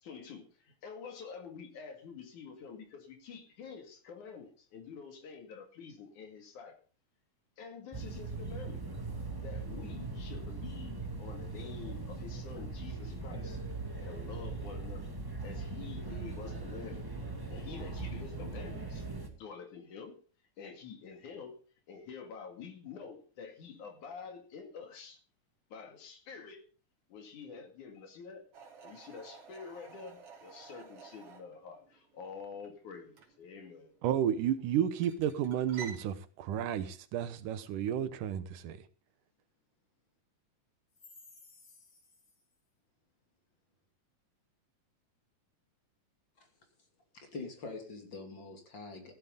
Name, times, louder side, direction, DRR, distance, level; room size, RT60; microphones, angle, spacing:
voice 1, 0.0-6.8 7.6-8.8 9.4-13.6 14.0-15.1 15.4-17.1 17.5-19.0 19.3-20.2 20.6-21.5 21.9-25.2 25.7-26.6 27.1-28.4 28.8-33.9, left 5 dB, 70° left, 3.6 m, -47 dB
sound 1, 7.9-19.3, right 3 dB, 10° right, 1.3 m, -40 dB
sound 2, 28.5-36.1, right 6 dB, 50° right, 3.1 m, -52 dB
voice 2, 34.0-38.8, right 10 dB, 80° right, 2.6 m, -32 dB
voice 3, 47.1-49.1, left 3 dB, 35° left, 3.1 m, -44 dB
15.0 x 12.0 x 3.8 m
omnidirectional pair, 3.7 m